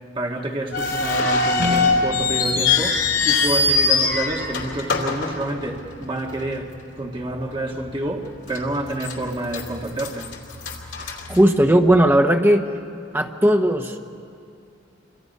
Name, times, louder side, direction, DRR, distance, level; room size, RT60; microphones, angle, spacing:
voice 1, 0.2-10.3, right 1 dB, 30° right, 1.8 m, -28 dB
sound 1, 0.7-6.0 6.3-6.4 7.2-7.4 7.8-7.9 8.5-9.1 9.5-12.0, left 4 dB, 80° left, 2.7 m, -22 dB
sound 2, 1.5-4.0, equal, 80° right, 1.4 m, -32 dB
voice 2, 11.0-12.7 13.1-14.1, right 1 dB, 10° right, 0.9 m, -17 dB
27.5 x 24.0 x 5.4 m
head